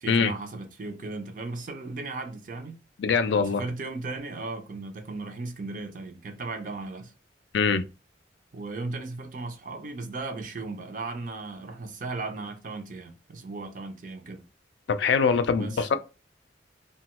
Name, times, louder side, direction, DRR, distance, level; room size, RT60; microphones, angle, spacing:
voice 1, 0.0-2.8 3.4-7.1 8.5-14.4 15.5-16.0, right 3 dB, 45° right, 0.5 m, -36 dB
voice 2, 3.0-3.6 7.5-7.9 14.9-16.0, left 5 dB, 75° left, 0.3 m, -23 dB
2.9 x 2.2 x 2.9 m
head